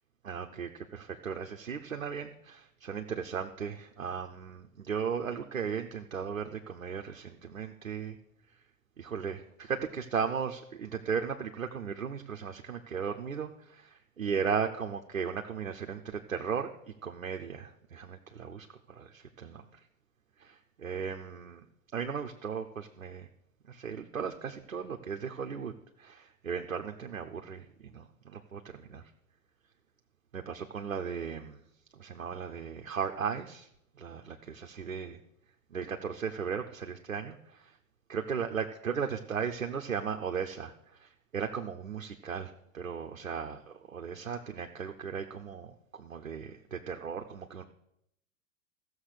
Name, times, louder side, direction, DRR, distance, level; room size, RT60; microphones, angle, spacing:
voice 1, 0.2-8.2 9.0-16.7 17.0-19.6 20.4-21.6 21.9-23.3 23.7-25.7 26.0-29.0 30.3-31.6 32.0-33.7 34.0-35.2 35.7-37.7 38.1-47.6, right 6 dB, 90° right, 3 dB, 1.1 m, -36 dB
14.5 x 7.0 x 6.7 m, 0.76 s
hypercardioid pair, 95°, 39 cm